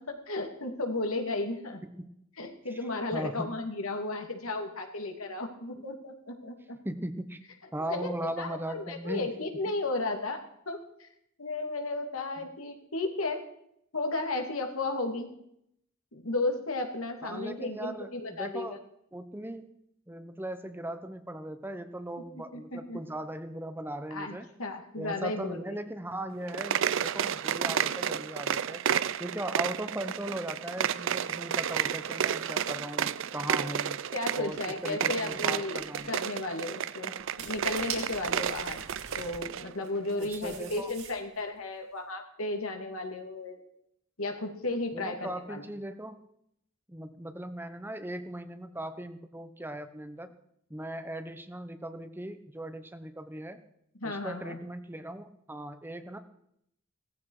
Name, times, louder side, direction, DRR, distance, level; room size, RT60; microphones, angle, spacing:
voice 1, 0.0-1.8 2.4-6.8 7.8-11.1 11.4-13.4 13.9-15.3 16.1-18.7 22.5-23.0 24.1-25.6 34.1-38.8 39.2-43.6 44.2-45.6 53.9-54.6, left 2 dB, 85° left, 4 dB, 2.8 m, -34 dB
voice 2, 3.1-3.5 5.8-5.9 6.8-7.4 7.7-9.3 12.4-12.5 17.2-18.8 19.1-19.7 20.1-24.5 25.0-28.8 29.2-34.0 34.4-36.2 40.2-40.9 44.9-46.2 46.9-50.3 50.7-53.6 54.0-56.2, right 1 dB, 10° right, 10 dB, 0.9 m, -38 dB
sound 1, 26.4-39.7, right 8 dB, 60° right, 0.5 m, -31 dB
sound 2, 34.5-34.6 35.3-35.4 35.8-36.1 37.2-39.4 39.8-41.4, right 6 dB, 80° right, 4.5 m, -43 dB
18.0 x 14.5 x 4.9 m, 0.74 s
head